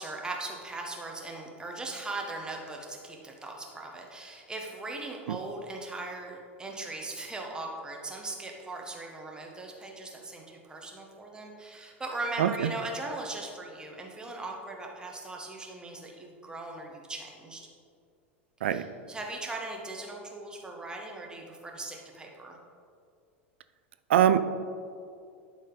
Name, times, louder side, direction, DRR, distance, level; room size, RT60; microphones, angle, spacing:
voice 1, 0.0-17.7 18.6-22.6, right 2 dB, 10° right, 0 dB, 1.3 m, -39 dB
voice 2, 12.4-12.7 18.6-18.8 24.1-24.4, right 10 dB, 65° right, 12 dB, 0.4 m, -22 dB
11.0 x 4.2 x 3.9 m, 2.4 s
figure-of-eight pair, 85°, 7 cm